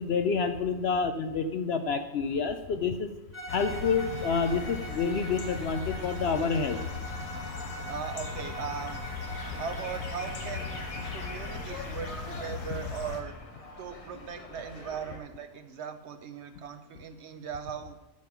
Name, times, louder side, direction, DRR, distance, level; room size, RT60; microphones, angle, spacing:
voice 1, 0.0-3.1 3.5-6.8, left 5 dB, 60° left, 8 dB, 0.7 m, -28 dB
Bowed string instrument, 3.3-11.7, right 1 dB, 10° right, 1.2 m, -42 dB
sound 1, 3.5-13.2, left 4 dB, 85° left, 1.6 m, -38 dB
voice 2, 7.9-9.0 9.6-13.4 13.8-18.0, right 7 dB, 60° right, 9 dB, 0.8 m, -39 dB
sound 2, 9.3-15.2, left 2 dB, 30° left, 1.1 m, -46 dB
7.5 x 7.3 x 5.9 m, 1.0 s
omnidirectional pair, 1.4 m